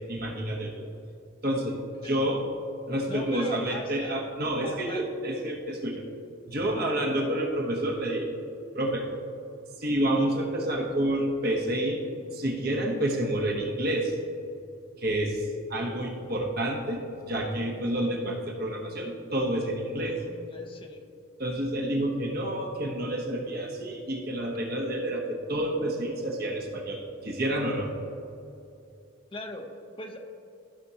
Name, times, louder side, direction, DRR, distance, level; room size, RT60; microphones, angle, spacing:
voice 1, 0.1-0.8 1.4-2.4 2.9-6.0 6.5-8.3 8.7-9.1 9.8-14.1 15.0-17.0 17.3-20.2 21.4-27.9, right 1 dB, 50° right, 0 dB, 0.9 m, -29 dB
voice 2, 3.1-4.2 4.6-5.0 6.7-7.0 20.0-21.0 29.3-30.3, left 1 dB, 25° left, 3 dB, 0.7 m, -40 dB
15.0 x 5.9 x 2.8 m, 2.6 s
head